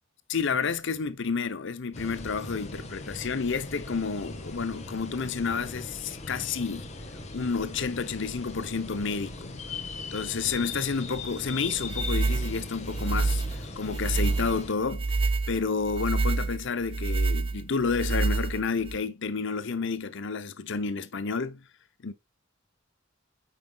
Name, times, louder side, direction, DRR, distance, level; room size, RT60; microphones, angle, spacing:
voice 1, 0.3-6.9 7.3-9.6 10.1-13.4 13.8-15.1 15.5-21.6 22.0-22.1, left 5 dB, 65° left, 0.8 m, -30 dB
sound 1, 1.9-14.7, left 3 dB, 35° left, 1.4 m, -39 dB
sound 2, 11.8-19.0, right 3 dB, 25° right, 0.5 m, -28 dB
8.7 x 5.9 x 2.3 m
head